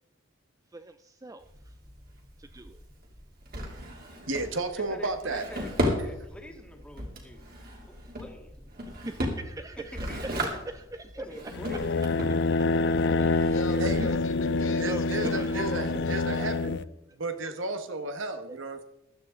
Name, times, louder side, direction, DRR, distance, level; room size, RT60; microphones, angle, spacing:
voice 1, 0.7-1.5 2.4-2.8 8.9-10.2 10.9-11.2 13.2-13.3 14.0-14.1 14.8-15.6, right 2 dB, 15° right, 0.4 m, -40 dB
Drawer open or close, 1.4-16.6, equal, 45° right, 3.1 m, -36 dB
voice 2, 3.6-4.0 4.3-5.5 5.8-6.1 13.8-14.0 14.8-16.8 17.1-18.8, right 2 dB, 65° right, 1.4 m, -33 dB
voice 3, 4.7-7.6 7.8-8.5 9.7-10.5 11.2-12.1, equal, 5° left, 1.8 m, -45 dB
sound 1, 11.5-16.8, left 3 dB, 55° left, 0.5 m, -26 dB
voice 4, 12.9-16.5, left 2 dB, 70° left, 1.9 m, -38 dB
15.5 x 12.5 x 3.9 m
head